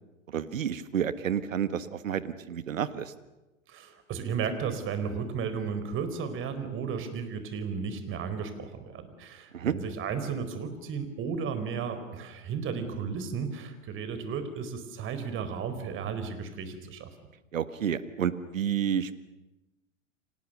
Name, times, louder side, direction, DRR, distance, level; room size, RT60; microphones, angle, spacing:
voice 1, 0.3-3.1 9.5-9.7 17.5-19.1, right 8 dB, 75° right, 13 dB, 1.6 m, -30 dB
voice 2, 3.7-17.1, right 6 dB, 30° right, 10 dB, 4.3 m, -34 dB
30.0 x 26.0 x 6.8 m, 1.0 s
hypercardioid pair, 105°, 40 cm